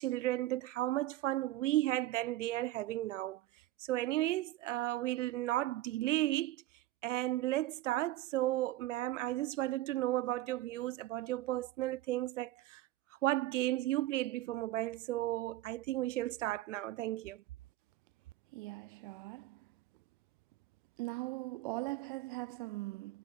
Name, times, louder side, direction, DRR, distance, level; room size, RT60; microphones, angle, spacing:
voice 1, 0.0-3.4 3.9-6.6 7.0-12.8 13.2-17.4, right 15 dB, 75° right, 1.2 m, -33 dB
voice 2, 18.5-19.7 21.0-23.2, right 21 dB, 40° right, 0.9 m, -41 dB
supercardioid pair, 180°, 37 cm